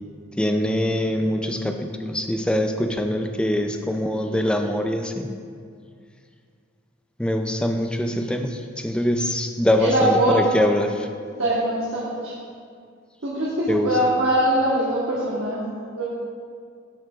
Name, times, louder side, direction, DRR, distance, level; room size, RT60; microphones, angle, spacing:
voice 1, 0.4-5.3 7.2-8.6 8.8-10.9 13.7-13.9, left 1 dB, 5° left, 5 dB, 0.3 m, -23 dB
voice 2, 9.8-10.4 11.4-12.3 13.2-15.6 15.9-16.0, right 1 dB, 65° right, -7 dB, 1.3 m, -22 dB
12.5 x 6.4 x 2.4 m, 2.2 s
head